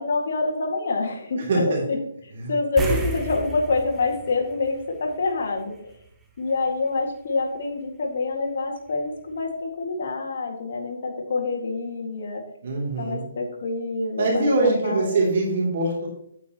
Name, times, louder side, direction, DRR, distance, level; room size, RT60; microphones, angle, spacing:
voice 1, 0.0-1.6 1.9-2.0 2.5-5.7 6.4-12.4 13.0-15.2, left 3 dB, 65° left, 0 dB, 2.1 m, -26 dB
voice 2, 1.4-1.8 2.3-2.5 2.8-3.0 12.6-13.2 14.2-16.1, right 2 dB, 55° right, -2 dB, 3.1 m, -23 dB
sound 1, 2.8-5.6 5.9-6.0 8.9-9.0 9.4-9.5, right 1 dB, 10° right, 0.9 m, -32 dB
8.9 x 8.3 x 3.1 m, 0.73 s
hypercardioid pair, 160°, 0 cm